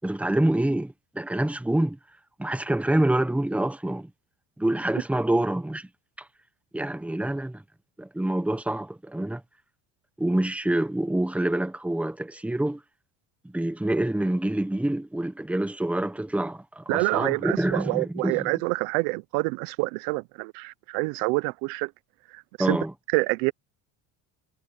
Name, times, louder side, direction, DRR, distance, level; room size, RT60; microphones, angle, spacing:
voice 1, 0.0-2.0 2.4-4.1 4.6-5.9 6.7-7.6 8.0-9.4 10.2-12.8 13.5-18.5 22.6-22.9, right 1 dB, 5° right, 1.1 m, -26 dB
voice 2, 16.9-21.9 22.7-22.8 23.1-23.5, right 26 dB, 90° right, 0.7 m, -27 dB
cardioid pair, 115°, 39 cm